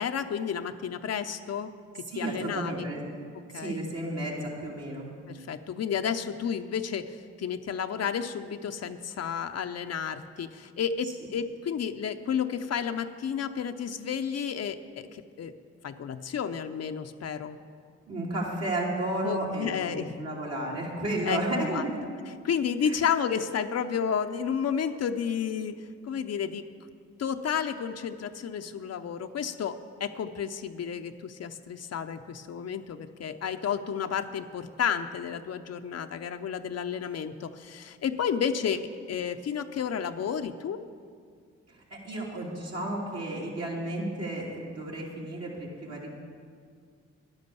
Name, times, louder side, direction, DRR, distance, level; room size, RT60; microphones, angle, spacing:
voice 1, 0.0-2.9 3.5-3.8 5.3-15.5 15.8-17.6 19.2-20.1 21.3-21.8 22.4-25.8 26.0-26.6 27.2-38.8 39.1-40.8, left 7 dB, 60° left, 8 dB, 0.7 m, -31 dB
voice 2, 2.1-3.0 3.5-5.1 18.1-22.0 22.8-23.0 41.7-46.1, right 1 dB, 60° right, -4 dB, 3.3 m, -32 dB
10.5 x 10.0 x 7.0 m, 2.1 s
cardioid pair, 60°, 29 cm